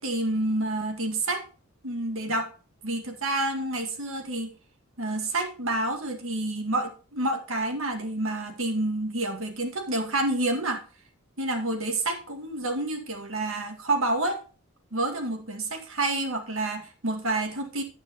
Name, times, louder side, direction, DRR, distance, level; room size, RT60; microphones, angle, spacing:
voice 1, 0.0-1.4 1.8-2.5 2.8-4.5 5.0-10.8 11.4-14.4 14.9-17.8, right 2 dB, 70° right, 5 dB, 2.0 m, -28 dB
9.6 x 9.1 x 2.9 m, 0.37 s
head